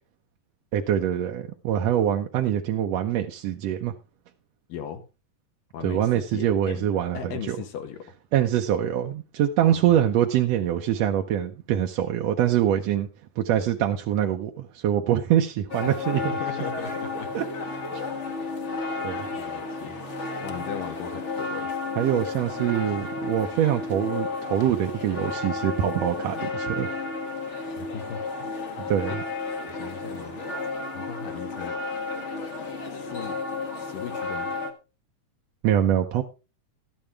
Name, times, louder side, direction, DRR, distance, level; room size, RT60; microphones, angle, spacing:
voice 1, 0.7-3.9 5.8-7.6 8.3-13.1 13.4-16.4 17.3-17.5 17.9-18.0 19.0-19.2 22.0-26.9 28.9-29.2 35.6-36.2, right 10 dB, 75° right, 3 dB, 1.6 m, -24 dB
voice 2, 4.7-5.0 5.7-6.9 7.1-8.1 9.6-10.1 16.2-17.3 17.7-18.0 19.3-20.0 20.4-21.7 27.8-28.2 29.1-29.2 29.6-30.4 30.9-31.8 33.0-33.4 33.8-34.5, left 7 dB, 80° left, 7 dB, 3.1 m, -38 dB
sound 1, 15.7-34.7, left 3 dB, 65° left, 0.6 m, -32 dB
12.5 x 10.5 x 3.5 m, 0.29 s
omnidirectional pair, 3.8 m